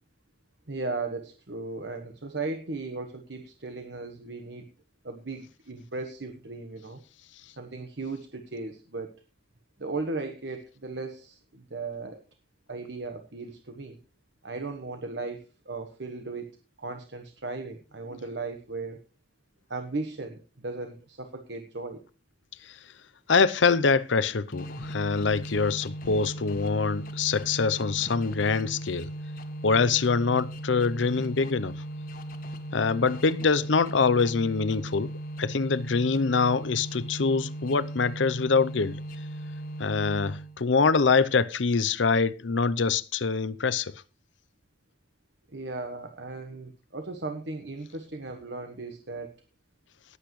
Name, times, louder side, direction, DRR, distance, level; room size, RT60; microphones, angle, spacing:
voice 1, 0.7-4.7 5.0-7.0 7.6-9.1 9.8-12.2 12.7-14.0 14.4-19.0 19.7-22.0 45.5-49.3, right 3 dB, 70° right, 1.3 m, -36 dB
voice 2, 23.3-29.1 29.6-31.7 32.7-35.1 35.4-39.0 39.8-43.9, left 4 dB, 80° left, 0.7 m, -24 dB
sound 1, 24.5-40.6, right 1 dB, 50° left, 1.5 m, -38 dB
19.0 x 8.2 x 3.2 m
head